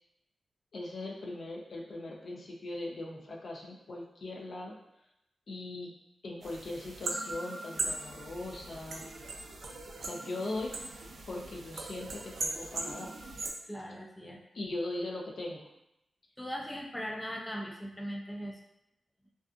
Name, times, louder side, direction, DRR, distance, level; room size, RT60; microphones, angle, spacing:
voice 1, 0.7-4.8 5.5-5.9 6.2-9.0 10.0-10.8 11.3-13.1 14.5-15.7, left 2 dB, 70° left, -2 dB, 0.5 m, -39 dB
sound 1, 6.4-13.5, right 3 dB, 75° right, 0.3 m, -39 dB
voice 2, 13.6-14.4 16.4-18.6, equal, 10° left, 0 dB, 0.4 m, -39 dB
2.5 x 2.4 x 2.4 m, 0.83 s
cardioid pair, 80°, 0 cm